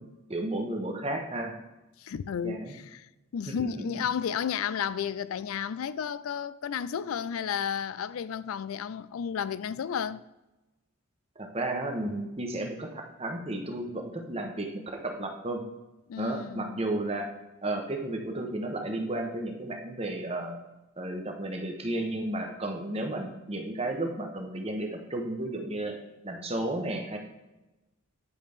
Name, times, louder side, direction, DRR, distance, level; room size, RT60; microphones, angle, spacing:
voice 1, 0.0-1.5 2.4-2.7 3.5-3.9 11.4-14.7 15.0-15.6 16.2-17.3 17.6-20.6 21.0-25.9 26.2-27.2, right 1 dB, 30° right, 1.0 m, -33 dB
voice 2, 2.0-3.1 3.3-10.2 16.1-16.8, left 7 dB, 85° left, 0.4 m, -32 dB
10.0 x 5.0 x 3.6 m
head